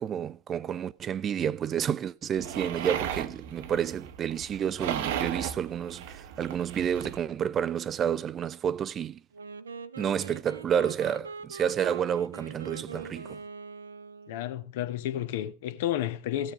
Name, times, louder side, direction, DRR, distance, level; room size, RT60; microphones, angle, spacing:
voice 1, 0.0-9.2 10.0-13.4, right 8 dB, 25° right, 0.6 m, -30 dB
sound 1, 2.4-7.2, right 9 dB, 50° right, 1.1 m, -36 dB
Wind instrument woodwind instrument, 9.3-14.5, right 5 dB, 75° right, 0.8 m, -42 dB
voice 2, 14.3-16.5, left 12 dB, 50° left, 1.3 m, -31 dB
16.0 x 7.1 x 4.8 m
figure-of-eight pair, 90°, 0 cm